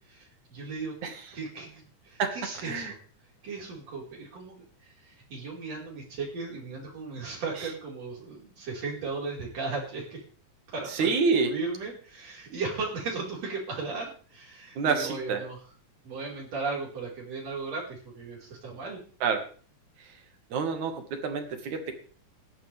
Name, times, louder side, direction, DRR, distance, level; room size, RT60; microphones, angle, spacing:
voice 1, 0.1-3.0 3.4-10.2 10.7-11.1 11.4-15.6 16.0-19.0, right 4 dB, 55° right, -3 dB, 6.0 m, -36 dB
voice 2, 2.6-2.9 10.9-11.5 14.8-15.4 19.2-19.4 20.5-21.9, right 5 dB, 75° right, 6 dB, 3.3 m, -27 dB
17.0 x 13.0 x 3.5 m, 0.41 s
omnidirectional pair, 3.5 m